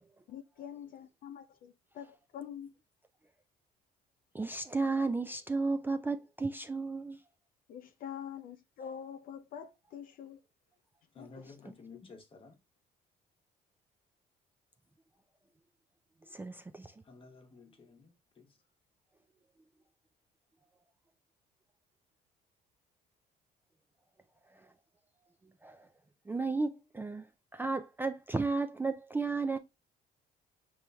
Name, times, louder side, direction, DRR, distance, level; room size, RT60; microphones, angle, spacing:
voice 1, 0.3-2.7 7.7-10.4 11.2-11.3, left 8 dB, 55° left, 0.4 m, -45 dB
voice 2, 4.3-7.2 16.3-16.9 25.6-25.9 26.3-27.3 27.5-29.6, right 3 dB, 10° right, 0.3 m, -33 dB
voice 3, 11.1-12.6 17.0-18.6, left 4 dB, 30° left, 1.0 m, -53 dB
5.3 x 3.1 x 2.2 m
cardioid pair, 110°, 17 cm